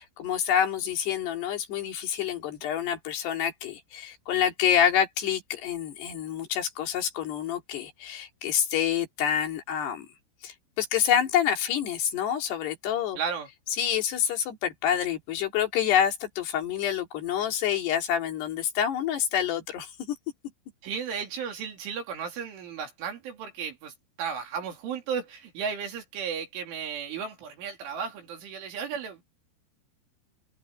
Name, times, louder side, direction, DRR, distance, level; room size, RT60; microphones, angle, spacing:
voice 1, 0.0-10.1 10.4-13.2 13.8-20.2, left 9 dB, 60° left, 4.7 m, -27 dB
voice 2, 13.2-13.5 20.8-23.9 24.2-29.2, right 6 dB, 70° right, 5.9 m, -34 dB
omnidirectional pair, 5.8 m